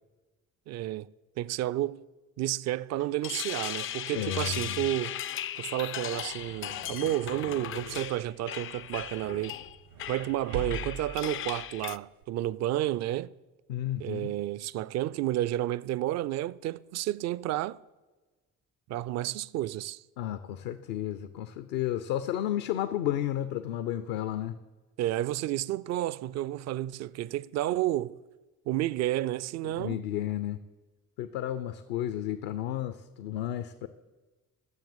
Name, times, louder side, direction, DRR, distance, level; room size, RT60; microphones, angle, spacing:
voice 1, 0.7-1.1 1.4-2.0 2.4-5.2 5.6-9.6 10.1-13.3 14.0-17.8 18.9-20.0 25.0-28.2 28.7-30.0, right 14 dB, 40° right, 0.4 m, -31 dB
sound 1, 3.0-12.0, left 11 dB, 30° left, 0.4 m, -37 dB
voice 2, 4.1-4.8 13.7-14.3 20.2-24.6 29.6-30.6 31.2-33.9, left 12 dB, 65° left, 0.6 m, -32 dB
sound 2, 5.9-12.2, right 4 dB, 80° right, 1.3 m, -44 dB
10.5 x 7.2 x 7.4 m
figure-of-eight pair, 40°, 44 cm